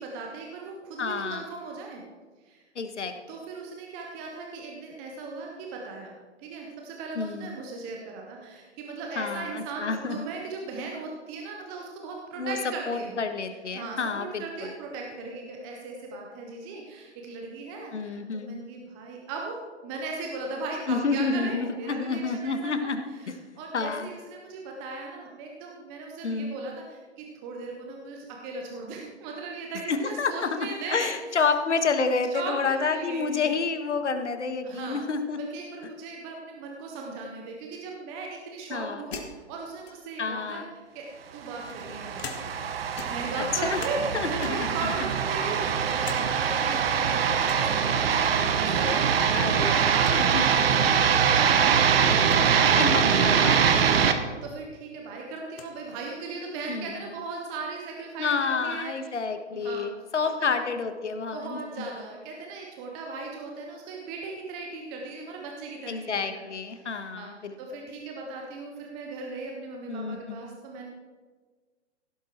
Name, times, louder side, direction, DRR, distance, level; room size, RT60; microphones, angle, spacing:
voice 1, 0.0-2.0 2.4-2.6 3.3-6.1 6.4-13.2 13.7-19.6 19.8-22.9 23.2-31.1 32.3-33.5 34.6-35.0 35.3-40.6 40.9-41.1 41.3-42.4 43.0-51.1 51.6-52.8 53.7-59.1 59.5-59.9 60.2-60.5 61.3-66.5 66.8-67.3 67.6-70.9, right 3 dB, 5° right, 0 dB, 0.3 m, -38 dB
voice 2, 1.0-1.4 2.7-3.1 7.1-7.6 9.2-10.2 12.4-12.6 12.9-14.7 17.9-18.6 20.9-23.4 23.7-24.1 26.2-26.5 29.9-35.4 38.7-39.0 40.2-40.6 43.4-43.8 44.1-44.9 46.6-46.8 49.3-49.9 50.3-50.6 52.8-53.8 56.7-57.0 58.2-61.9 65.9-67.6 69.9-70.4, left 4 dB, 80° left, 8 dB, 1.5 m, -29 dB
sound 1, 39.1-40.3 41.1-42.7 42.9-44.1 44.4-44.8 45.3-46.3 46.6-46.7 47.4-47.7 49.1-49.5 49.8-49.9 50.0-50.2 51.0-51.1 52.2-52.5 54.2-54.3 54.6-55.7, left 5 dB, 60° left, 1.8 m, -43 dB
sound 2, 41.6-54.1, right 7 dB, 55° right, 1.2 m, -23 dB
16.0 x 7.9 x 4.4 m, 1.4 s
hypercardioid pair, 130°, 34 cm